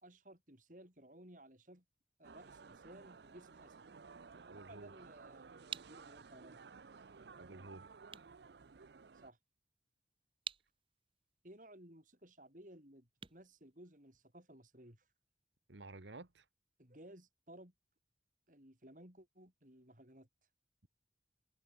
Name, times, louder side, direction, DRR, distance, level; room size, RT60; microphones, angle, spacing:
voice 1, 0.0-1.8 2.2-3.9 4.6-6.6 9.2-9.4 11.4-15.0 16.8-17.7 18.5-20.3, right 1 dB, 45° right, 5.4 m, -58 dB
sound 1, 2.2-9.3, right 5 dB, 65° right, 0.6 m, -56 dB
voice 2, 4.5-4.9 7.4-7.9 15.7-16.4, right 2 dB, 85° right, 1.6 m, -52 dB
sound 2, 9.4-14.5, right 7 dB, 30° right, 1.4 m, -53 dB
open air
head